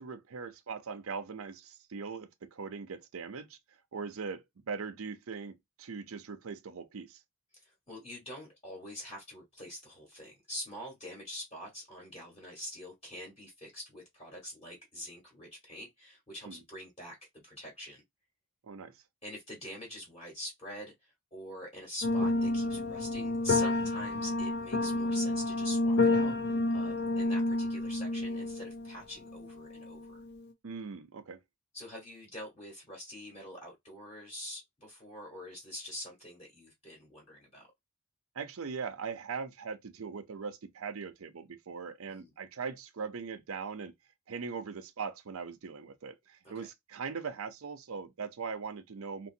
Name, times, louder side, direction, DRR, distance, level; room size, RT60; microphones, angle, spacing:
voice 1, 0.0-3.6 3.9-7.2 16.5-16.6 18.6-19.0 30.6-31.4 38.3-43.9 44.3-49.3, right 5 dB, 75° right, 0.6 m, -40 dB
voice 2, 7.6-18.0 19.2-30.2 31.7-37.7 42.1-42.3 46.4-46.7, equal, 25° left, 1.3 m, -45 dB
sound 1, 22.0-30.4, left 2 dB, 50° left, 0.6 m, -30 dB
3.0 x 2.6 x 2.7 m
head